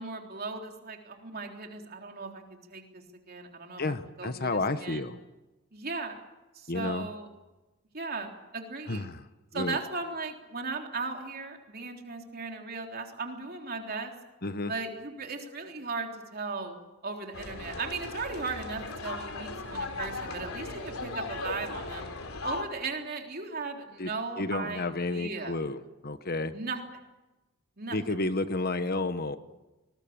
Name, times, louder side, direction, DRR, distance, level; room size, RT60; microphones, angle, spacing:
voice 1, 0.0-5.1 5.7-6.2 6.5-7.3 7.9-9.1 9.5-14.1 14.7-16.8 17.0-22.0 22.4-24.9 25.1-25.6 26.5-26.8 27.8-28.0, right 4 dB, 45° right, 2 dB, 3.6 m, -37 dB
voice 2, 3.8-5.2 6.7-7.1 8.9-9.2 9.5-9.8 14.4-14.7 24.0-24.1 24.4-26.5 27.9-29.4, left 2 dB, 45° left, 11 dB, 1.2 m, -31 dB
sound 1, 17.3-22.6, left 3 dB, 80° left, 3.5 m, -37 dB
25.5 x 20.5 x 8.8 m, 1.1 s
head